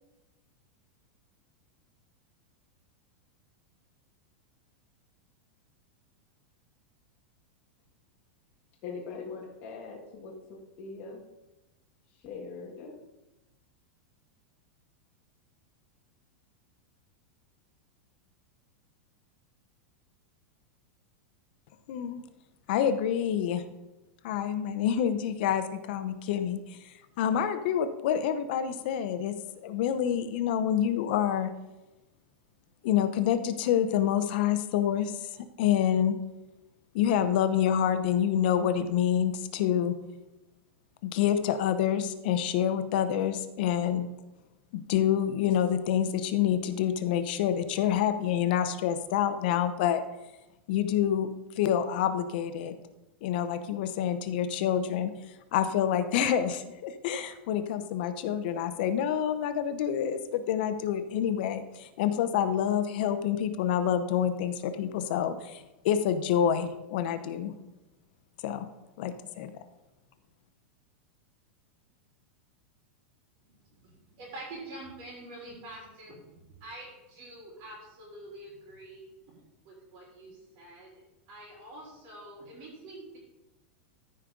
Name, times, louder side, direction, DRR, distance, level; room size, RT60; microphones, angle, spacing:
voice 1, 8.8-11.2 12.2-12.9, left 4 dB, 35° left, -3 dB, 1.7 m, -41 dB
voice 2, 21.9-22.2 22.7-23.6 24.2-26.6 27.2-29.4 29.6-31.5 32.8-35.3 35.6-36.2 36.9-39.9 41.0-44.1 44.9-50.0 50.7-51.3 51.6-52.7 53.2-55.1 55.5-67.5 68.4-68.7 69.0-69.5, left 9 dB, 55° left, 10 dB, 0.7 m, -27 dB
voice 3, 73.4-79.4 79.6-80.9 81.3-83.2, right 1 dB, 40° right, -4 dB, 3.5 m, -46 dB
14.0 x 5.2 x 3.8 m, 1.0 s
supercardioid pair, 165°, 6 cm